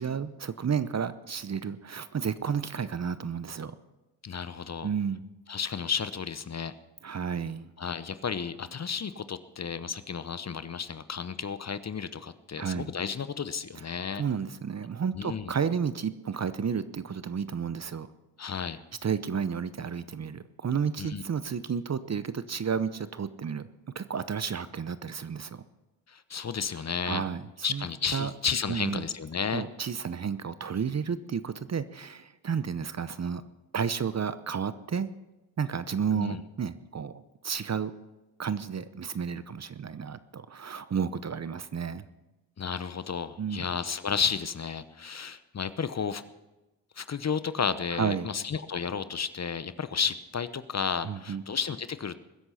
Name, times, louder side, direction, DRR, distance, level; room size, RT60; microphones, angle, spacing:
voice 1, 0.0-3.8 4.8-5.2 7.0-7.7 12.6-12.9 14.2-18.1 19.0-23.7 23.9-25.6 27.0-27.9 28.1-28.3 28.7-29.0 29.5-33.4 33.7-35.1 35.6-37.9 38.4-42.0 43.4-43.6 47.9-48.3 51.0-51.4, right 6 dB, 35° right, 14 dB, 0.8 m, -32 dB
voice 2, 4.2-4.9 5.5-6.7 7.8-14.2 15.1-15.5 18.4-18.8 21.0-21.2 26.1-27.2 27.6-29.6 36.1-36.4 42.6-46.2 47.0-52.2, left 6 dB, 35° left, 13 dB, 0.8 m, -32 dB
21.5 x 7.9 x 5.7 m, 1.0 s
supercardioid pair, 55°, 47 cm